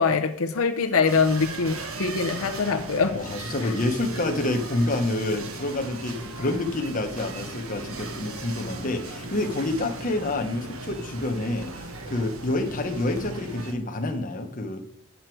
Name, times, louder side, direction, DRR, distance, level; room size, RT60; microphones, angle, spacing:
voice 1, 0.0-3.1 3.6-3.7, left 5 dB, 75° left, 6 dB, 0.7 m, -23 dB
sound 1, 1.0-13.7, right 2 dB, 75° right, 1.2 m, -38 dB
voice 2, 3.1-14.8, left 2 dB, 40° left, 5 dB, 1.0 m, -28 dB
8.1 x 7.8 x 4.5 m, 0.71 s
head